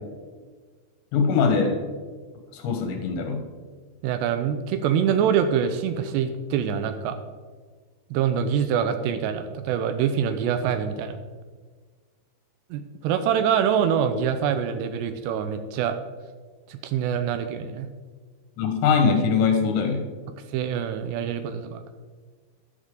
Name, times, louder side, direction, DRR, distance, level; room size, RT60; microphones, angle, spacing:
voice 1, 1.1-1.8 2.5-3.4 18.6-20.1, left 5 dB, 75° left, 4 dB, 3.6 m, -22 dB
voice 2, 4.0-7.2 8.1-11.2 12.7-16.0 16.7-17.9 20.5-21.8, right 8 dB, 80° right, 9 dB, 2.7 m, -25 dB
12.0 x 11.5 x 3.9 m, 1.5 s
omnidirectional pair, 5.2 m